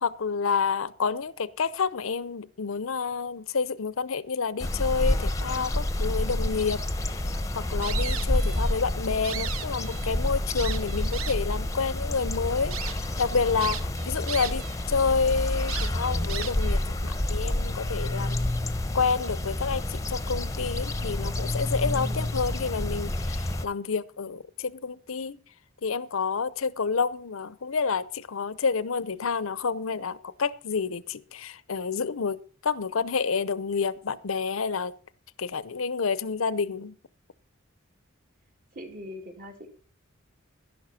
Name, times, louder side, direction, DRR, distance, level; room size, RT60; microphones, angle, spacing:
voice 1, 0.0-6.8 7.5-18.5 18.9-25.4 25.8-34.9 35.4-36.9, left 5 dB, 75° left, 0.7 m, -29 dB
sound 1, 4.6-23.7, left 1 dB, 15° left, 0.9 m, -29 dB
sound 2, 7.8-8.8 9.1-10.1 10.6-11.6 12.1-12.2 12.7-12.9 13.6-14.8 15.1-15.2 15.7-16.8, right 9 dB, 85° right, 1.0 m, -36 dB
voice 2, 21.8-22.5 38.7-39.7, equal, 45° right, 2.6 m, -42 dB
11.5 x 11.5 x 4.2 m
head